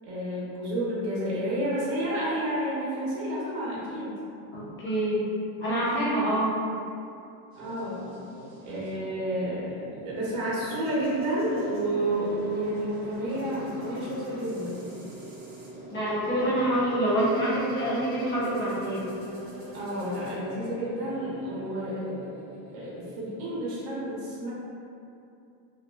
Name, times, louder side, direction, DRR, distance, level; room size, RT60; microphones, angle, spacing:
voice 1, 0.0-4.1 7.5-8.0 8.6-14.8 19.7-22.2 22.7-24.5, right 1 dB, 60° right, -7 dB, 0.9 m, -30 dB
voice 2, 4.5-5.2 5.6-6.6 15.9-19.1, right 1 dB, 25° left, -9 dB, 0.8 m, -26 dB
sound 1, 7.5-23.6, equal, 25° right, 1.0 m, -43 dB
2.8 x 2.4 x 2.2 m, 2.6 s
cardioid pair, 145°, 43 cm